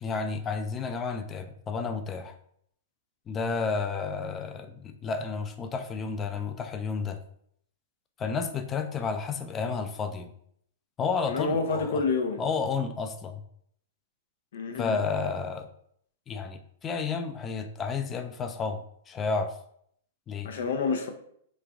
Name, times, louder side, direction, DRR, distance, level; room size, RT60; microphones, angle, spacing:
voice 1, 0.0-2.4 3.3-7.2 8.2-10.3 11.0-12.0 12.4-13.4 14.8-15.7 16.3-19.6 20.3-20.5, left 5 dB, 20° left, 0.3 m, -31 dB
voice 2, 11.3-12.4 14.5-15.0 20.4-21.1, left 4 dB, 75° left, 0.6 m, -28 dB
3.1 x 2.5 x 3.4 m
hypercardioid pair, 145°, 0 cm